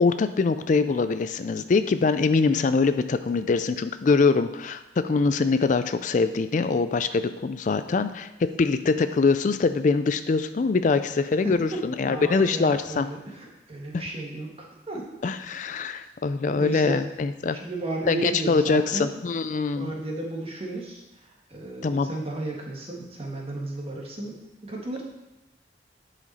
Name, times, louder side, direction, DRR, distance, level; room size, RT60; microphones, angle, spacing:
voice 1, 0.0-13.1 13.9-14.0 15.2-17.6 18.1-19.9 21.8-22.1, left 4 dB, 45° left, 11 dB, 0.3 m, -23 dB
voice 2, 11.4-15.1 16.6-17.0 17.5-19.1 19.7-25.0, right 2 dB, 30° right, -1 dB, 1.4 m, -34 dB
11.0 x 5.1 x 4.2 m, 0.99 s
head